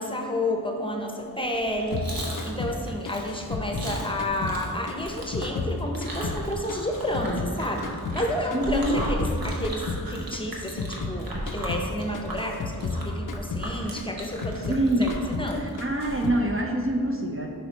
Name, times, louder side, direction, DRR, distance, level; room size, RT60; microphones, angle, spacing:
voice 1, 0.0-15.8, left 1 dB, 15° left, 1 dB, 0.7 m, -31 dB
Chewing mastication, 1.5-16.3, equal, 65° right, 1.2 m, -36 dB
sound 1, 1.9-4.6 4.9-7.6 7.8-11.2 11.5-11.9 12.1-14.8 15.1-15.5 15.8-16.4, left 3 dB, 55° left, 0.5 m, -33 dB
voice 2, 8.5-9.0 14.7-15.1 15.6-17.5, right 1 dB, 35° right, 2 dB, 0.6 m, -25 dB
6.1 x 5.1 x 4.0 m, 2.3 s
wide cardioid pair, 65°, 38 cm